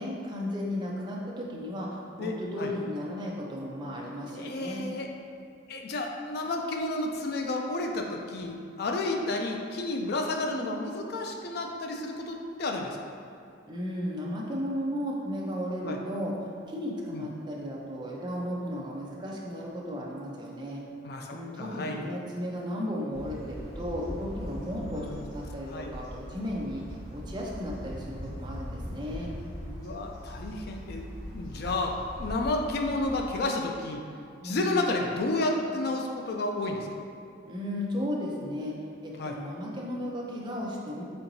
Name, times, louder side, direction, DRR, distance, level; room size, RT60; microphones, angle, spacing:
voice 1, 0.0-1.9 2.2-4.8 13.7-16.3 16.7-20.8 21.3-25.1 25.3-26.8 27.1-29.3 34.4-34.8 37.5-38.7 39.0-41.0, equal, 25° right, -3 dB, 0.5 m, -34 dB
voice 2, 2.2-2.7 4.3-5.1 5.7-13.0 15.8-16.0 17.1-17.3 21.0-22.0 24.8-25.3 25.7-25.9 29.6-31.1 31.3-34.0 34.4-36.9 39.2-39.4, left 2 dB, 55° left, 2 dB, 0.4 m, -31 dB
sound 1, 23.1-33.3, equal, 75° left, 1.3 m, -41 dB
4.4 x 3.7 x 2.6 m, 2.5 s
head